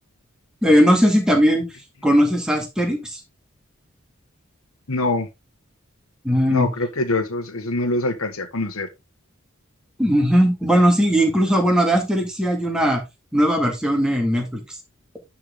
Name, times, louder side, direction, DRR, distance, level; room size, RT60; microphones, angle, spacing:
voice 1, 0.6-1.6 2.0-3.2 6.2-6.7 10.0-13.0 13.3-14.6, equal, 5° right, 1.9 m, -18 dB
voice 2, 4.9-5.3 6.5-8.9, left 2 dB, 85° left, 1.4 m, -24 dB
10.5 x 4.4 x 3.6 m
head